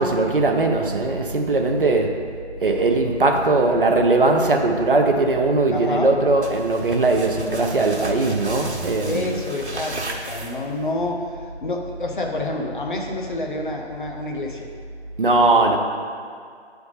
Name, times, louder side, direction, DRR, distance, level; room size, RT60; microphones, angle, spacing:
voice 1, 0.0-2.1 2.6-9.4 15.2-15.8, right 2 dB, 50° right, 3 dB, 0.7 m, -19 dB
voice 2, 1.8-2.1 5.7-6.1 9.0-14.7, left 2 dB, 45° left, 1 dB, 0.8 m, -28 dB
sound 1, 6.4-10.9, right 2 dB, 75° right, 1.1 m, -34 dB
7.6 x 3.5 x 5.5 m, 2.2 s
figure-of-eight pair, 160°, 34 cm